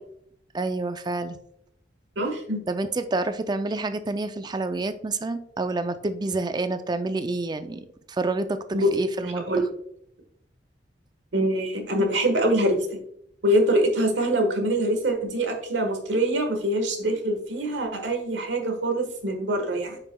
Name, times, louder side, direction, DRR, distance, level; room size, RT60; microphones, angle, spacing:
voice 1, 0.5-1.4 2.7-8.6 8.9-9.5, right 3 dB, 25° right, 10 dB, 0.4 m, -28 dB
voice 2, 2.2-2.6 8.7-9.7 11.3-13.0 13.4-20.0, right 1 dB, 90° right, 4 dB, 1.3 m, -24 dB
8.9 x 5.5 x 2.2 m, 0.72 s
head